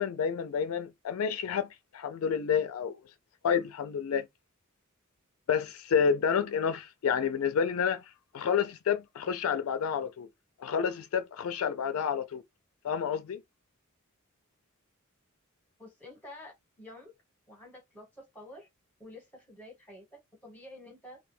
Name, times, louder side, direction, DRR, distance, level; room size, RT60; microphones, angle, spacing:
voice 1, 0.0-3.0 3.4-4.3 5.5-8.0 8.3-10.3 10.6-12.4 12.8-13.4, left 7 dB, 90° left, 0.4 m, -29 dB
voice 2, 15.8-17.2 17.5-18.7 19.0-21.2, left 1 dB, 10° left, 1.0 m, -49 dB
2.2 x 2.2 x 3.1 m
head